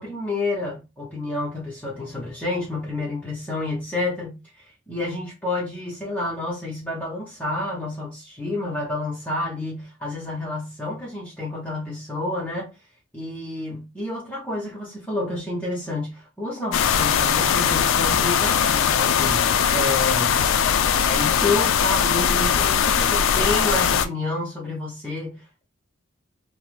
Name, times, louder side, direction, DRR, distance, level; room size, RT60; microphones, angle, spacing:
voice 1, 0.0-4.4 4.9-12.7 13.1-20.3 21.0-25.6, left 2 dB, 10° left, 0.7 m, -29 dB
sound 1, 16.7-24.1, left 8 dB, 75° left, 0.3 m, -20 dB
2.9 x 2.1 x 3.0 m
head